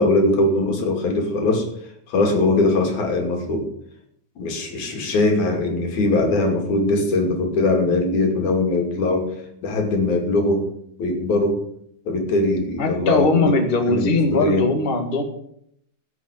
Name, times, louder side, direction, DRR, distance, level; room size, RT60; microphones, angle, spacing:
voice 1, 0.0-1.7 2.1-3.7 4.4-9.3 9.6-10.7 11.0-11.6 12.1-13.5 13.9-14.7, left 2 dB, 80° left, 3 dB, 3.9 m, -21 dB
voice 2, 12.8-15.2, left 3 dB, 25° left, 4 dB, 1.4 m, -20 dB
15.5 x 6.2 x 8.4 m, 0.71 s
omnidirectional pair, 3.4 m